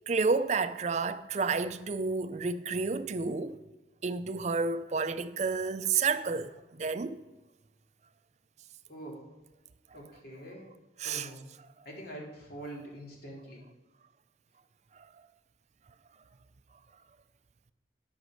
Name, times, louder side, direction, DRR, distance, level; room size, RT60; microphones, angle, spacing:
voice 1, 0.1-3.6 4.0-7.2 11.0-11.3, right 4 dB, 40° right, 0.4 m, -30 dB
voice 2, 8.9-9.2 9.9-10.7 11.0-11.4 11.8-13.6, right 1 dB, 55° left, 2.9 m, -44 dB
11.0 x 5.2 x 6.3 m
head